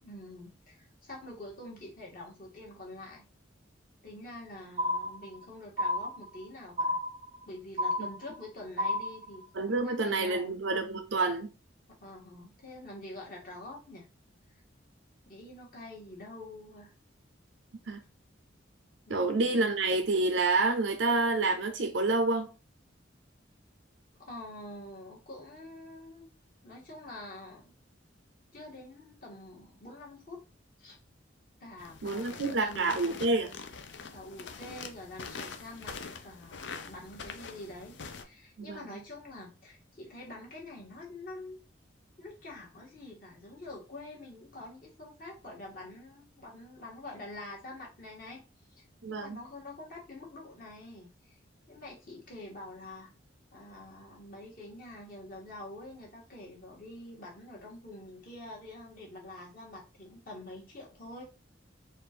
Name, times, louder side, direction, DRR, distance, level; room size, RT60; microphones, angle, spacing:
voice 1, 0.0-3.2 4.0-7.0 7.5-10.6 11.9-14.1 15.2-16.9 19.1-19.9 24.2-26.3 26.6-27.7 28.5-30.4 30.8-31.0 31.6-33.0 34.1-41.6 42.2-48.4 48.7-51.4 51.7-53.1 53.5-61.2, left 1 dB, 45° left, 1.8 m, -46 dB
sound 1, 4.8-5.5 5.8-6.5 6.8-7.5 7.8-8.5 8.8-9.5, left 1 dB, 30° right, 0.4 m, -31 dB
voice 2, 9.5-11.5 17.9-18.0 19.1-22.5 32.0-33.5 38.6-38.9 49.0-49.4, right 3 dB, 75° right, 0.6 m, -28 dB
sound 2, 31.8-38.2, left 5 dB, 70° left, 0.5 m, -44 dB
4.3 x 2.5 x 4.4 m
head